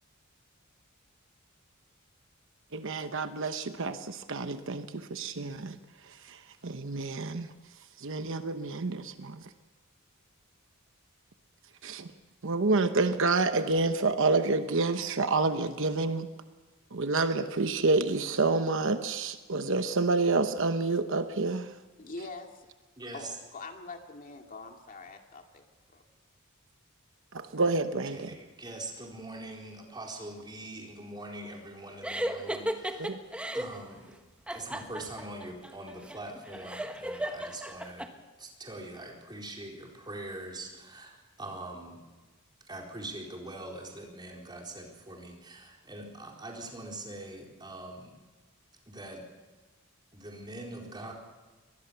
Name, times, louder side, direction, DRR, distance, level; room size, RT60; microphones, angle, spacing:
voice 1, 2.7-5.8 6.0-7.5 8.0-9.5 11.8-12.1 12.4-16.3 16.9-21.7 27.3-28.4 33.0-33.2, right 3 dB, 60° right, 9 dB, 1.0 m, -28 dB
voice 2, 22.0-22.7 23.1-25.6 25.9-26.0, left 3 dB, 40° left, 3 dB, 2.2 m, -44 dB
voice 3, 23.0-23.3 28.1-33.1 33.5-34.2 34.5-38.1 38.4-42.0 42.7-48.1 48.9-49.3 50.1-51.1, right 2 dB, 20° right, 0 dB, 4.2 m, -43 dB
sound 1, 32.0-33.8 34.5-38.1, right 1 dB, 5° right, 1.3 m, -35 dB
23.5 x 19.5 x 7.0 m, 1.3 s
head